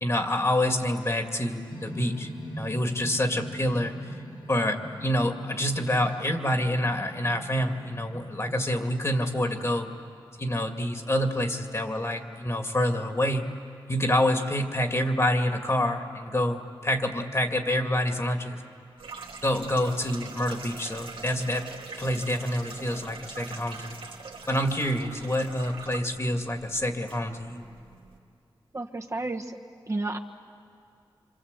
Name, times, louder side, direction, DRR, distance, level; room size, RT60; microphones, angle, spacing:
voice 1, 0.0-2.3 2.6-3.9 4.5-9.9 10.4-13.4 13.9-18.7 19.4-21.7 22.0-24.0 24.5-27.6, left 1 dB, 30° left, 5 dB, 2.2 m, -27 dB
sound 1, 1.7-10.1, equal, 75° left, 3.6 m, -42 dB
sound 2, 19.0-28.2, right 4 dB, 90° right, 2.3 m, -43 dB
voice 2, 28.7-29.6 29.9-30.2, right 2 dB, 35° right, 2 dB, 1.4 m, -31 dB
27.5 x 26.0 x 8.2 m, 2.3 s
wide cardioid pair, 85°, 9 cm